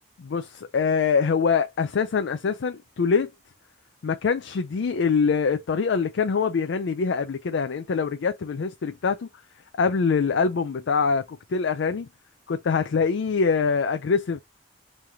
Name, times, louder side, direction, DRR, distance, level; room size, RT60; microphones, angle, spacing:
voice 1, 0.2-3.3 4.0-9.3 9.7-11.2 11.5-12.1 12.5-14.4, left 5 dB, 80° left, 0.4 m, -24 dB
3.2 x 2.8 x 3.5 m
head